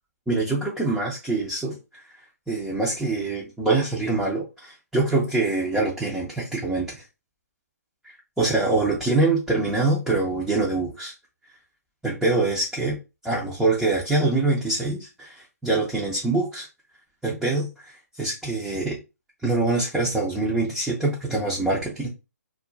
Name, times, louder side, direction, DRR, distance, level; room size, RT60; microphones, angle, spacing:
voice 1, 0.3-2.0 2.5-7.0 8.4-11.1 12.0-13.0 13.2-16.7 17.2-17.9 18.2-19.0 19.4-22.1, right 2 dB, ahead, -6 dB, 0.4 m, -24 dB
2.4 x 2.1 x 3.8 m, 0.27 s
hypercardioid pair, 145°, 9 cm